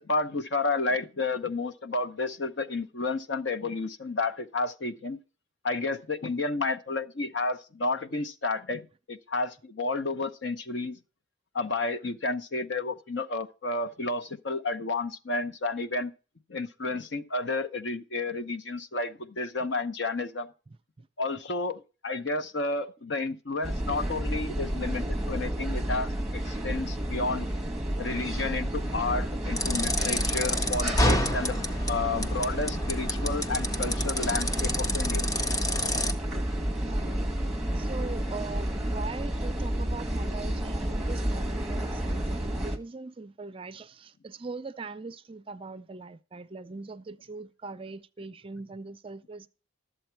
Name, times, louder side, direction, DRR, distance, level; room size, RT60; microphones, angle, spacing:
voice 1, 0.0-5.2 5.6-8.8 9.1-11.0 11.5-16.1 16.5-20.5 21.2-27.5 28.0-35.3, left 3 dB, 55° left, 0.8 m, -31 dB
sound 1, 23.6-42.8, right 1 dB, 5° right, 1.0 m, -31 dB
sound 2, 29.6-36.1, left 1 dB, 15° left, 0.6 m, -29 dB
voice 2, 36.8-37.1 37.7-49.5, right 3 dB, 25° right, 0.4 m, -41 dB
12.5 x 7.8 x 4.5 m
head